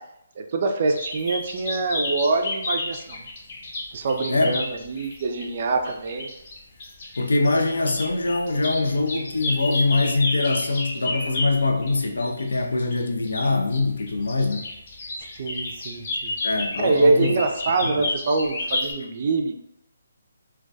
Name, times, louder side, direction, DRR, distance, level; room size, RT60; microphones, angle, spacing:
voice 1, 0.4-3.2 3.9-6.3 15.4-16.3 16.8-19.5, right 3 dB, 45° right, 0.3 m, -24 dB
sound 1, 1.0-5.5 5.8-18.9, left 2 dB, 50° left, 0.7 m, -31 dB
voice 2, 7.2-14.7 16.4-17.4 17.8-18.0, left 3 dB, 75° left, 0.3 m, -23 dB
2.2 x 2.2 x 2.6 m
figure-of-eight pair, 145°, 0 cm